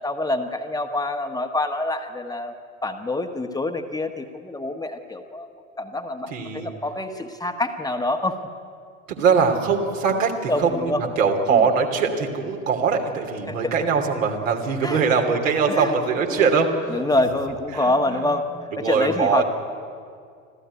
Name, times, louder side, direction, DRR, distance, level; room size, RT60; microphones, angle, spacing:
voice 1, 0.0-2.5 2.8-5.5 5.8-8.4 10.5-11.0 11.5-11.7 13.5-13.7 14.8-15.0 15.7-16.0 16.3-16.6 16.9-18.5 18.8-19.4, left 2 dB, 10° left, 5 dB, 1.3 m, -26 dB
voice 2, 6.3-6.7 9.1-17.0 17.7-17.9 18.7-19.4, right 5 dB, 65° right, 2 dB, 3.0 m, -22 dB
25.5 x 15.0 x 9.4 m, 2.2 s
figure-of-eight pair, 75°, 42 cm